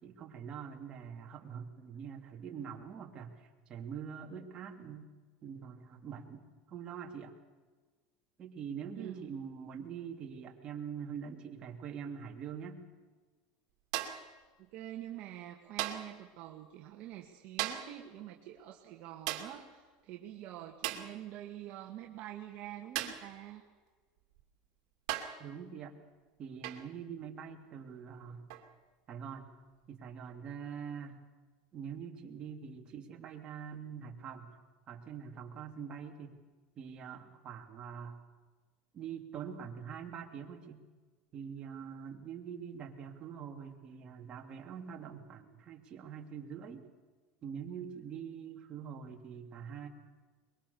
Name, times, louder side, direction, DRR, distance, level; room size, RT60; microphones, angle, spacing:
voice 1, 0.0-5.1 5.4-7.3 8.4-12.8 25.4-25.9 26.4-28.5 29.1-29.5 29.9-31.2 31.7-34.5 34.9-36.4 36.8-38.2 38.9-40.8 41.3-46.9 47.4-49.9, right 7 dB, 30° right, 1 dB, 2.9 m, -44 dB
voice 2, 8.9-9.3 14.6-23.6, right 12 dB, 50° right, 1 dB, 1.9 m, -46 dB
sound 1, 13.9-14.3 15.8-16.2 17.6-18.0 19.3-19.6 20.8-21.1 23.0-23.3 24.4-24.5 25.1-25.5 26.6-26.9 28.5-28.7, right 13 dB, 70° right, 2.5 m, -37 dB
23.5 x 22.5 x 7.1 m, 1.4 s
supercardioid pair, 150°, 3 cm